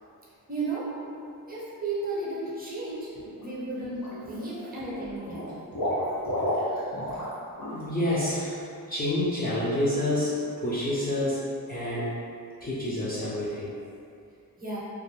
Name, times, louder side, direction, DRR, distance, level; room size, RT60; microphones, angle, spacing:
voice 1, 0.5-0.9 1.5-3.1 3.4-5.6 14.6-14.9, right 2 dB, 25° right, -7 dB, 0.6 m, -34 dB
Water / Liquid, 3.2-3.4 3.8-4.5 4.8-7.3 7.6-7.8 8.2-8.3, left 1 dB, 70° left, 1.3 m, -31 dB
voice 2, 5.3-6.4 6.7-7.0 7.7-11.4 11.7-12.2 12.6-13.7, left 1 dB, 25° left, -9 dB, 0.4 m, -29 dB
2.4 x 2.3 x 3.1 m, 2.4 s
wide cardioid pair, 150°, 36 cm